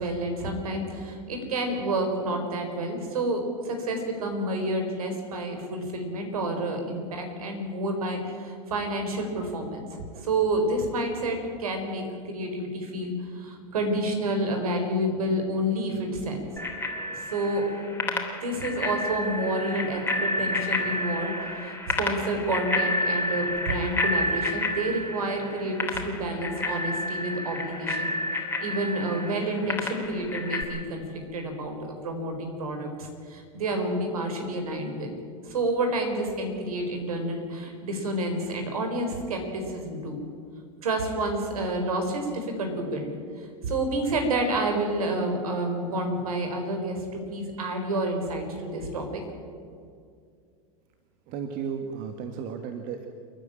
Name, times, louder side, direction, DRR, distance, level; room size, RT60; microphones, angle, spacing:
voice 1, 0.0-9.9 10.1-16.5 17.1-17.6 18.0-28.1 28.6-31.0 31.3-35.1 35.4-40.2 40.8-43.1 43.4-49.2, right 1 dB, 80° right, 4 dB, 4.6 m, -29 dB
Bicycle bell, 16.6-30.6, left 1 dB, 10° left, 3.3 m, -30 dB
voice 2, 51.3-53.1, right 7 dB, 50° right, 6 dB, 1.7 m, -34 dB
29.0 x 10.0 x 9.0 m, 2.2 s
hypercardioid pair, 100°, 18 cm